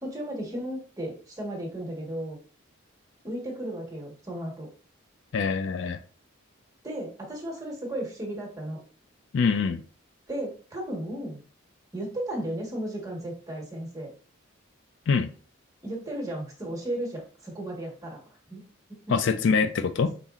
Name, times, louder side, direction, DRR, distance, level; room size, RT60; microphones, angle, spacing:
voice 1, 0.0-2.4 3.2-4.7 6.8-8.8 10.3-11.4 11.9-14.1 15.8-18.2 18.5-18.6, right 1 dB, 15° right, -1 dB, 1.3 m, -34 dB
voice 2, 5.3-6.0 9.3-9.8 15.1-15.3 19.1-20.1, left 5 dB, 60° left, 10 dB, 0.4 m, -24 dB
5.6 x 3.9 x 2.4 m, 0.41 s
head